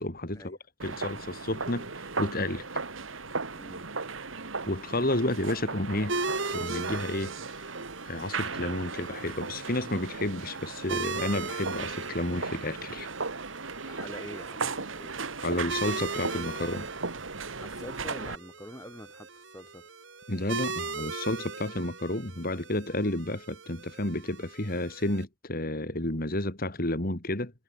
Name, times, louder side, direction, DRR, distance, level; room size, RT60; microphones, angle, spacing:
voice 1, 0.0-2.7 4.7-6.1 6.5-7.7 8.0-13.1 15.4-16.9 20.3-27.5, left 1 dB, 50° left, 2.9 m, -31 dB
sound 1, 0.8-18.3, right 4 dB, 90° right, 2.3 m, -37 dB
voice 2, 3.5-3.9 13.8-15.2 17.6-19.9, left 1 dB, 15° left, 4.3 m, -46 dB
sound 2, 6.1-25.2, right 4 dB, 70° right, 6.6 m, -39 dB
head